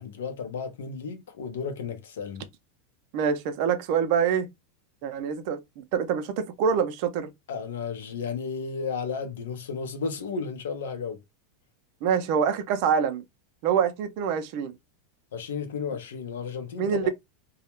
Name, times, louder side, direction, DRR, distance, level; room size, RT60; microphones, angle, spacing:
voice 1, 0.0-2.5 7.5-11.2 15.3-17.1, left 5 dB, 85° left, 0.6 m, -33 dB
voice 2, 3.1-4.5 5.0-7.3 12.0-13.2 13.6-14.7 16.8-17.1, right 7 dB, 55° right, 0.4 m, -25 dB
2.3 x 2.0 x 2.8 m
supercardioid pair, 125°, 0 cm